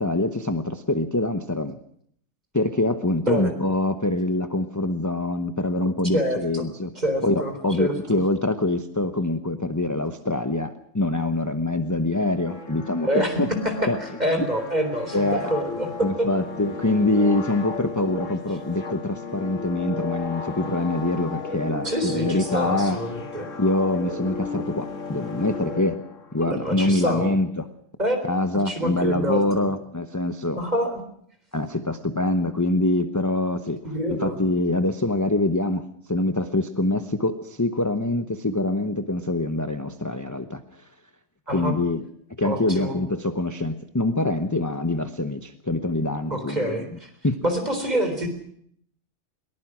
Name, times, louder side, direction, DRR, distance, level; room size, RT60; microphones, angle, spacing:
voice 1, 0.0-1.8 2.5-6.9 7.2-13.5 13.9-14.0 15.1-15.5 16.0-23.0 23.6-26.0 26.3-27.7 28.2-30.6 31.5-33.8 34.1-40.9 41.5-42.0 42.4-46.8 47.2-47.4, left 2 dB, 15° left, 8 dB, 1.0 m, -25 dB
voice 2, 6.1-6.6 7.0-8.2 13.0-13.4 14.0-15.9 16.2-16.3 21.8-23.5 26.4-27.4 28.0-29.7 30.6-31.0 33.8-34.4 41.5-41.7 42.4-43.0 46.3-47.1 47.4-48.3, right 1 dB, 35° right, 6 dB, 4.1 m, -27 dB
sound 1, 12.4-26.5, left 4 dB, 90° left, 1.9 m, -35 dB
22.0 x 20.0 x 6.2 m, 0.65 s
omnidirectional pair, 1.3 m